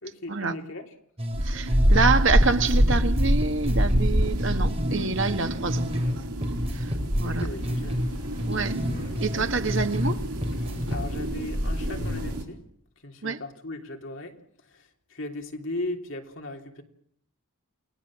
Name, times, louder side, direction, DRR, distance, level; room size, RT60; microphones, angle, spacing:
voice 1, 0.0-0.9 7.2-8.1 9.7-9.8 10.9-12.6 13.0-14.4 14.7-16.8, left 2 dB, 55° left, 3.3 m, -37 dB
sound 1, 1.2-2.1 2.4-6.1 6.4-10.1 10.4-11.2, equal, 25° right, 4.4 m, -30 dB
sound 2, 1.3-12.4, equal, 80° right, 4.3 m, -26 dB
voice 2, 1.4-6.0 7.2-7.5 8.5-8.8 9.2-10.2 13.2-13.4, right 4 dB, 55° right, 1.6 m, -26 dB
Train, 7.6-12.5, equal, 80° left, 6.3 m, -38 dB
29.0 x 20.0 x 7.5 m
head